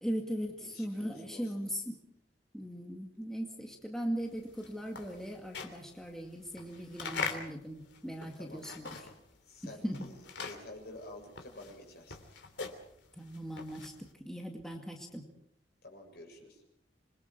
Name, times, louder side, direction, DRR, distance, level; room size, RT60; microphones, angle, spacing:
voice 1, 0.0-2.0 2.5-9.0 9.6-10.1 13.1-15.3, equal, 5° left, 1 dB, 2.1 m, -39 dB
voice 2, 0.6-1.5 8.4-8.7 9.5-10.1 10.4-12.2 15.8-16.6, left 1 dB, 60° left, 2 dB, 7.3 m, -50 dB
sound 1, 4.3-9.4 9.6-14.1, left 5 dB, 80° left, 3.1 m, -42 dB
27.0 x 22.0 x 4.7 m, 0.77 s
head